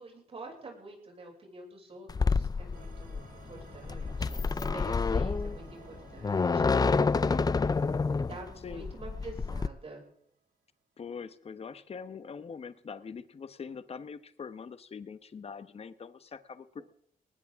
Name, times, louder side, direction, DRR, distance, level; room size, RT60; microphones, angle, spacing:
voice 1, 0.0-7.0 8.3-10.0, right 2 dB, 40° right, 0 dB, 6.5 m, -47 dB
sound 1, 2.1-9.7, left 4 dB, 25° left, 0.6 m, -28 dB
sound 2, 2.7-9.8, right 6 dB, 65° right, 3.4 m, -56 dB
voice 2, 7.3-7.8 8.6-8.9 11.0-16.8, left 6 dB, 40° left, 12 dB, 1.1 m, -43 dB
20.0 x 19.5 x 3.7 m, 0.67 s
cardioid pair, 105°, 16 cm